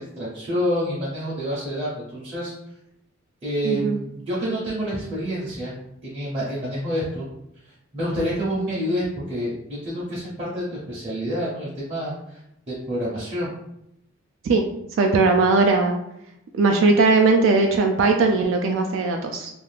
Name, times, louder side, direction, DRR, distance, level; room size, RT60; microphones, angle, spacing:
voice 1, 0.0-2.5 3.4-5.7 6.0-7.3 7.9-12.4 12.7-13.5, equal, 30° right, -8 dB, 0.7 m, -28 dB
voice 2, 3.6-4.0 14.4-14.6 15.0-15.9 16.5-19.5, right 3 dB, 65° right, 3 dB, 0.3 m, -19 dB
2.5 x 2.3 x 3.3 m, 0.82 s
head